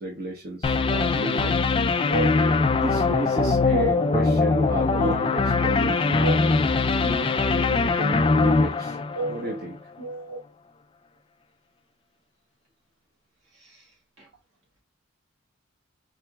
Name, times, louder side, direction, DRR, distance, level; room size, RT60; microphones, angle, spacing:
voice 1, 0.0-1.6 2.1-2.2 2.7-6.3 7.0-9.0 9.3-9.7, right 1 dB, 45° right, 1.0 m, -33 dB
sound 1, 0.6-9.7, left 3 dB, 25° left, 0.3 m, -22 dB
voice 2, 3.7-4.1 5.0-5.4 6.2-6.6 7.5-7.7 8.4-8.6 9.1-9.5 10.0-10.4 13.6-13.8 14.2-14.3, right 2 dB, 60° right, 2.2 m, -31 dB
4.5 x 3.9 x 2.2 m
head